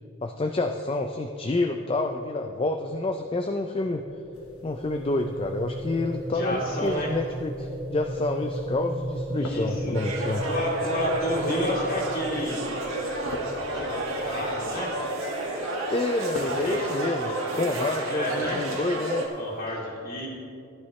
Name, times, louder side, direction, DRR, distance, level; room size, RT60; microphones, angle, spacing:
voice 1, 0.2-4.0 4.6-10.4 15.9-19.3, left 2 dB, 25° left, 5 dB, 0.4 m, -28 dB
sound 1, 3.4-15.6, right 1 dB, 25° right, 0.6 m, -36 dB
sound 2, 4.3-19.7, equal, 80° left, 1.2 m, -46 dB
voice 2, 6.3-7.1 9.3-10.0 10.4-12.6 13.7-15.0 16.3-16.9 17.2-17.4 18.1-18.6 19.4-20.3, equal, 40° left, -4 dB, 2.5 m, -30 dB
sound 3, 9.9-19.3, right 1 dB, 70° right, 1.9 m, -31 dB
14.5 x 11.0 x 3.2 m, 2.6 s
head